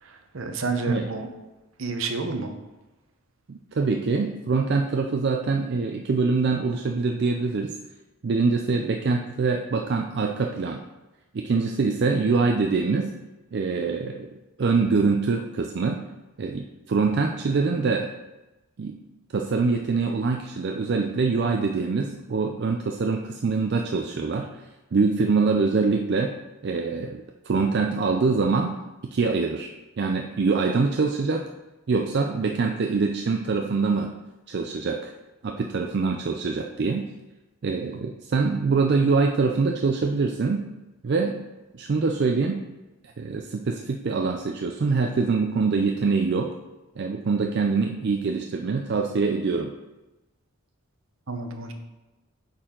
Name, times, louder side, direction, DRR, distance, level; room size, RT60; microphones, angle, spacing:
voice 1, 0.0-1.3 1.8-2.5 51.3-51.7, right 3 dB, 65° right, 6 dB, 0.8 m, -30 dB
voice 2, 3.5-7.8 8.2-10.8 11.3-13.1 13.5-14.3 14.6-16.0 16.4-18.1 18.8-19.0 19.3-24.5 24.9-26.3 26.6-28.8 29.1-31.4 31.9-34.1 34.5-35.1 35.4-37.1 37.6-40.7 41.0-41.4 41.7-42.6 43.2-46.5 47.0-49.7, right 4 dB, 50° right, 3 dB, 0.4 m, -24 dB
8.7 x 4.4 x 3.8 m, 1.1 s
head